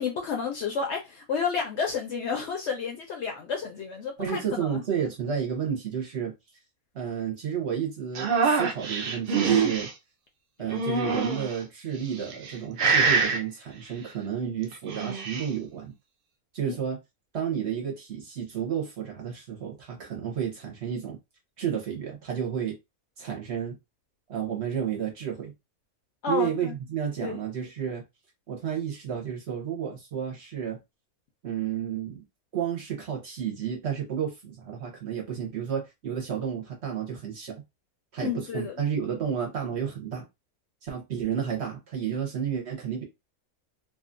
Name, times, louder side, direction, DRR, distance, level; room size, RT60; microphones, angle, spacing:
voice 1, 0.0-4.8 16.7-16.8 26.2-26.7 27.2-27.4 38.2-38.8, left 6 dB, 65° left, 0.7 m, -31 dB
voice 2, 4.2-6.3 6.9-9.9 10.6-15.9 16.5-17.0 17.3-21.2 21.6-22.8 23.2-23.8 24.3-25.5 26.3-28.0 28.5-30.8 31.4-32.2 32.5-37.6 38.1-40.2 40.8-43.0, right 8 dB, 55° right, 0.9 m, -31 dB
sound 1, 8.1-9.9 10.7-11.5 12.2-12.5 12.8-13.4 14.7-15.5, right 5 dB, 70° right, 0.5 m, -24 dB
2.7 x 2.3 x 2.5 m
omnidirectional pair, 1.5 m